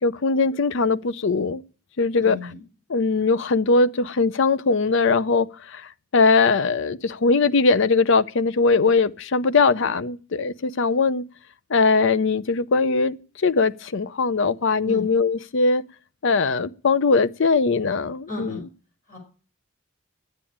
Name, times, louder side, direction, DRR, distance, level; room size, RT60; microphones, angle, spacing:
voice 1, 0.0-1.6 2.0-2.4 2.9-5.8 6.1-11.2 11.7-13.2 13.4-15.8 16.2-18.5, left 4 dB, 65° left, 0.6 m, -20 dB
voice 2, 2.2-2.6 14.8-15.0 18.3-18.6 19.1-19.2, left 2 dB, 45° left, 5.0 m, -34 dB
10.5 x 9.0 x 8.6 m
head